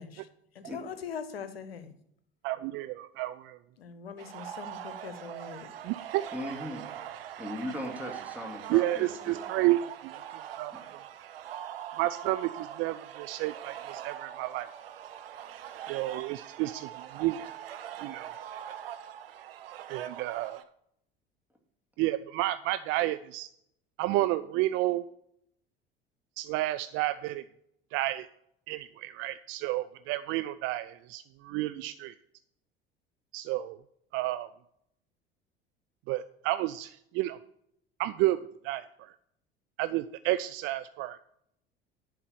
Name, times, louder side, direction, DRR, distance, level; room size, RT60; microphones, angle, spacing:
voice 1, 0.0-1.9 3.8-5.7, left 7 dB, 75° left, 12 dB, 0.9 m, -42 dB
voice 2, 2.4-3.6 5.8-6.2 8.7-10.7 12.0-14.7 15.9-17.5 18.0-18.3 19.9-20.6 22.0-23.5 24.0-25.0 26.4-27.4 27.9-28.3 28.7-32.1 33.3-33.8 34.1-34.5 36.1-37.4 38.0-38.4 38.6-39.1 39.8-41.2, right 16 dB, 45° right, 12 dB, 0.4 m, -31 dB
sound 1, 4.2-20.6, right 10 dB, 70° right, 0.7 m, -42 dB
voice 3, 6.3-6.8 7.4-9.3, left 1 dB, 5° right, 1 dB, 2.2 m, -38 dB
11.0 x 4.5 x 7.0 m, 0.73 s
figure-of-eight pair, 65°, 30 cm